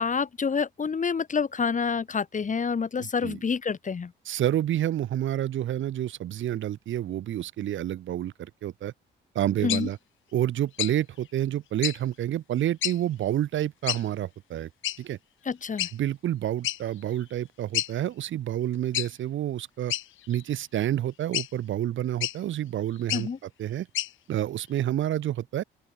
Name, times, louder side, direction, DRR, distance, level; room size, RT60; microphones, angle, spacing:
voice 1, 0.0-4.1 9.6-9.9 15.5-15.9 23.1-23.4, left 5 dB, 40° left, 6.0 m, -28 dB
voice 2, 3.0-3.4 4.3-8.9 9.4-10.0 10.3-14.7 15.0-15.2 15.9-19.9 20.3-23.9 24.3-25.6, right 12 dB, 75° right, 5.4 m, -29 dB
sound 1, 9.7-9.8 10.8-11.0 11.8-12.0 12.8-13.0 13.9-14.0 14.8-15.0 15.8-15.9 16.6-16.8 17.2-17.3 17.7-17.9 18.9-19.1 19.9-20.4 21.3-21.5 22.2-22.4 23.0-23.3 23.9-24.1, left 14 dB, 80° left, 1.7 m, -29 dB
open air
cardioid pair, 90°, 20 cm